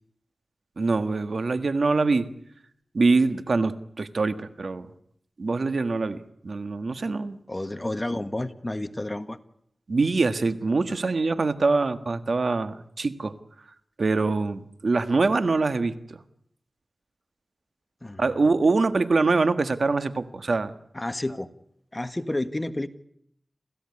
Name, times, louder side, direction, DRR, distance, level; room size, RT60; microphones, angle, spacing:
voice 1, 0.8-2.3 2.9-4.9 5.4-6.2 6.4-7.4 9.9-13.3 14.0-16.2 18.2-20.7, right 3 dB, 65° right, 10 dB, 1.5 m, -24 dB
voice 2, 7.5-9.4 18.0-18.3 20.9-21.5 21.9-22.9, left 1 dB, 20° left, 10 dB, 1.6 m, -30 dB
28.0 x 16.0 x 9.8 m, 0.71 s
wide cardioid pair, 60°, 0 cm